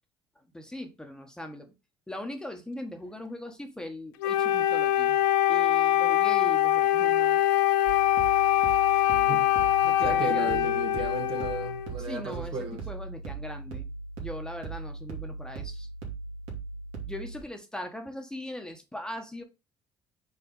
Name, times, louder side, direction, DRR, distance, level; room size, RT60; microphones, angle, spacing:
voice 1, 0.3-1.7 2.1-5.2 5.5-7.4 9.8-10.7 12.0-13.9 14.2-15.9 17.1-19.4, left 1 dB, 5° left, 1.3 m, -40 dB
Wind instrument woodwind instrument, 4.2-11.9, left 13 dB, 90° left, 0.4 m, -23 dB
sound 1, 7.9-17.4, right 4 dB, 75° right, 2.3 m, -39 dB
voice 2, 9.1-12.8, right 4 dB, 55° right, 1.9 m, -35 dB
4.7 x 4.4 x 5.4 m
supercardioid pair, 75°, 10 cm